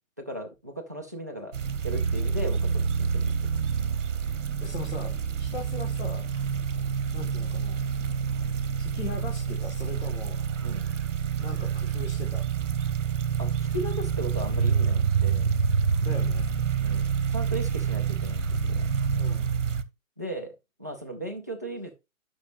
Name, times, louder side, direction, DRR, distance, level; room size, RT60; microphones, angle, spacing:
voice 1, 0.2-1.5 1.8-3.5 10.6-10.9 13.4-15.5 16.8-18.8 20.2-20.5 20.8-21.9, right 1 dB, 15° right, 0.4 m, -37 dB
sound 1, 1.5-19.8, right 6 dB, 60° right, 1.0 m, -27 dB
voice 2, 4.6-5.1 5.4-6.3 7.1-7.8 8.8-10.4 11.4-12.4 16.0-16.5 19.2-19.5, left 4 dB, 50° left, 1.8 m, -39 dB
11.0 x 6.2 x 2.6 m
figure-of-eight pair, 135°, 41 cm